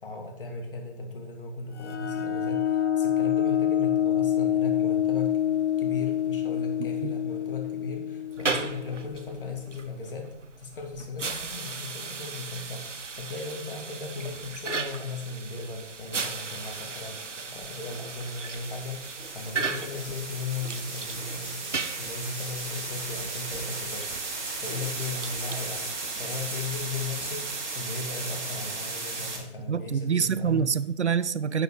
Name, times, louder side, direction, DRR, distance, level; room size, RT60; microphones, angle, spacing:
voice 1, 0.0-5.4 5.8-10.3 10.6-30.7, left 3 dB, 50° left, 2 dB, 2.7 m, -37 dB
sound 1, 1.8-9.2, left 10 dB, 70° left, 0.7 m, -27 dB
sound 2, 8.3-27.9, right 4 dB, 85° right, 1.0 m, -37 dB
sound 3, 14.0-14.3 16.5-29.4, right 3 dB, 40° right, 2.7 m, -36 dB
voice 2, 29.7-31.6, right 7 dB, 70° right, 16 dB, 0.7 m, -26 dB
11.5 x 8.0 x 3.9 m, 0.88 s
figure-of-eight pair, 150°, 36 cm